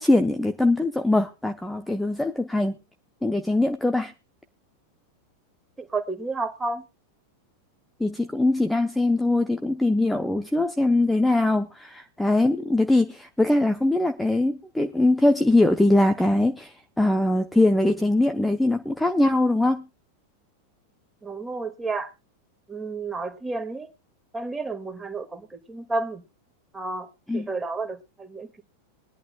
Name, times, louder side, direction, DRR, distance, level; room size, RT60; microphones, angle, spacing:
voice 1, 0.0-2.8 3.2-4.1 8.0-19.8 27.3-27.5, left 2 dB, 5° left, 7 dB, 0.8 m, -22 dB
voice 2, 5.8-6.8 21.2-22.1 22.7-23.9 24.3-26.2 26.7-27.1 27.3-28.6, right 3 dB, 10° right, 5 dB, 2.1 m, -31 dB
22.0 x 11.0 x 2.3 m, 0.29 s
figure-of-eight pair, 90°, 0 cm